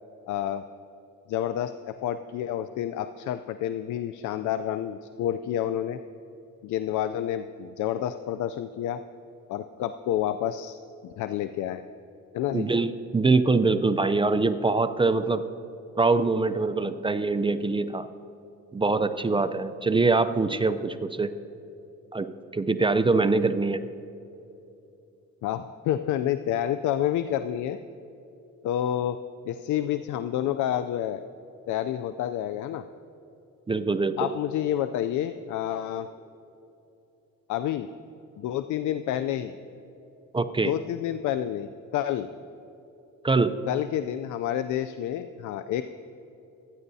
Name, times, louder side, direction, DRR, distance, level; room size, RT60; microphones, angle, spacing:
voice 1, 0.3-0.6 1.3-6.0 6.6-9.0 9.5-10.8 11.0-11.8 12.3-12.7 25.4-27.8 28.6-31.2 31.7-32.8 34.2-36.1 37.5-37.9 38.4-39.6 40.6-42.3 43.7-45.8, left 11 dB, 75° left, 10 dB, 0.5 m, -29 dB
voice 2, 12.5-15.4 15.9-18.1 18.7-21.3 22.1-22.3 22.5-23.8 33.7-34.2 40.3-40.7 43.2-43.5, right 3 dB, 15° right, 10 dB, 0.5 m, -23 dB
24.5 x 10.0 x 2.7 m, 2.9 s
cardioid pair, 90°, 30 cm